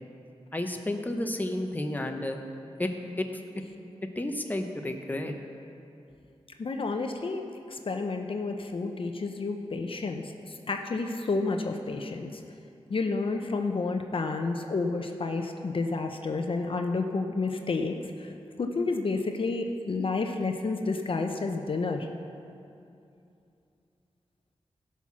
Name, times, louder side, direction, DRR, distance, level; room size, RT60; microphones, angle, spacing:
voice 1, 0.5-2.4 2.8-2.9 3.2-3.3 4.2-5.3, left 1 dB, 15° left, 4 dB, 0.9 m, -31 dB
voice 2, 6.6-12.4 12.9-18.3 18.6-22.1, left 3 dB, 55° left, 4 dB, 0.7 m, -30 dB
16.0 x 5.7 x 6.2 m, 2.6 s
wide cardioid pair, 85°, 11 cm